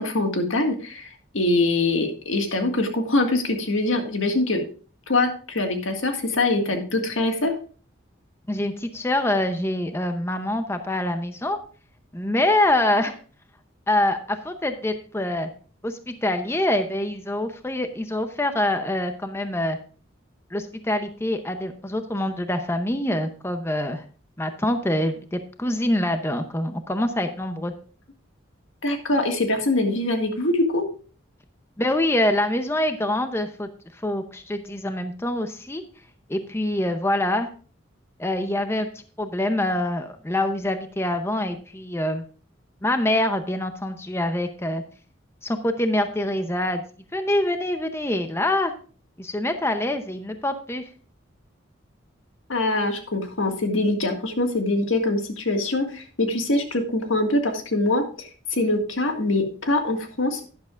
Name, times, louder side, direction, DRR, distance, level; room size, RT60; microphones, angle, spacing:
voice 1, 0.0-4.6 5.1-7.5 28.8-30.8 52.5-60.5, left 2 dB, 85° left, 4 dB, 1.8 m, -23 dB
voice 2, 8.5-11.6 12.1-13.2 13.9-15.5 15.8-19.8 20.5-24.0 24.4-27.7 31.8-35.8 36.3-37.5 38.2-42.2 42.8-44.8 45.4-46.8 47.1-48.7 49.2-50.9, left 1 dB, 15° left, 8 dB, 0.7 m, -25 dB
11.5 x 10.5 x 2.5 m, 0.40 s
head